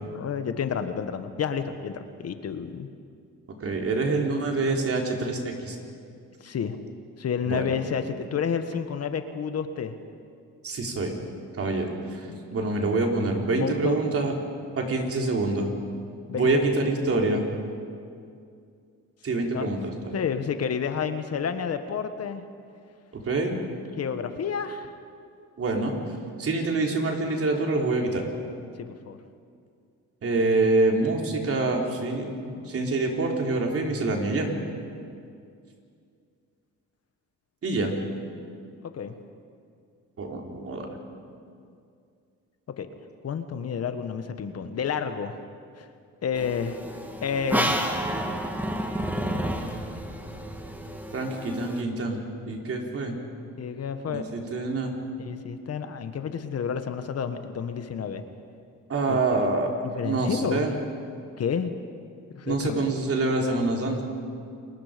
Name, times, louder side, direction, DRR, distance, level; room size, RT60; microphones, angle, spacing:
voice 1, 0.1-2.9 6.4-6.8 7.2-9.9 12.3-12.4 13.4-14.0 16.3-16.6 19.5-19.7 20.1-22.4 24.0-24.9 28.8-29.2 38.8-39.2 42.8-42.9 43.2-45.4 45.8-45.9 46.2-46.8 47.2-47.8 53.6-54.3 55.2-58.2 59.1-59.4 59.8-60.6 61.4-61.8 62.3-62.8, left 7 dB, 55° left, 9 dB, 1.4 m, -30 dB
voice 2, 3.6-5.8 7.5-7.8 10.6-11.2 11.6-14.3 14.8-15.7 16.3-17.5 19.2-20.2 23.1-23.5 25.6-25.9 26.4-28.3 30.2-34.5 37.6-37.9 40.2-40.9 51.1-52.2 52.5-53.2 54.1-54.9 58.9-59.7 60.0-60.7 62.5-64.0, right 2 dB, 50° right, 1 dB, 3.9 m, -26 dB
sound 1, 46.4-51.8, right 1 dB, 5° right, 2.2 m, -30 dB
29.0 x 21.0 x 5.2 m, 2.4 s
cardioid pair, 90°, 30 cm